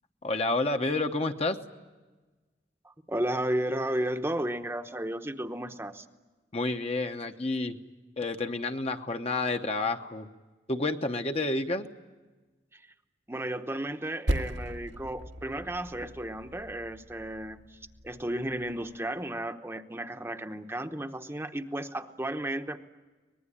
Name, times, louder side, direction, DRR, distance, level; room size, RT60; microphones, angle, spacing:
voice 1, 0.2-1.6 6.5-7.8 8.2-10.3 10.7-11.9, left 2 dB, 35° left, 6 dB, 1.0 m, -29 dB
voice 2, 2.8-6.1 12.7-12.8 13.3-22.8, right 1 dB, 15° right, 6 dB, 0.9 m, -33 dB
Percussion, 14.3-19.1, equal, 85° right, 1.8 m, -37 dB
24.5 x 20.5 x 9.8 m, 1.3 s
head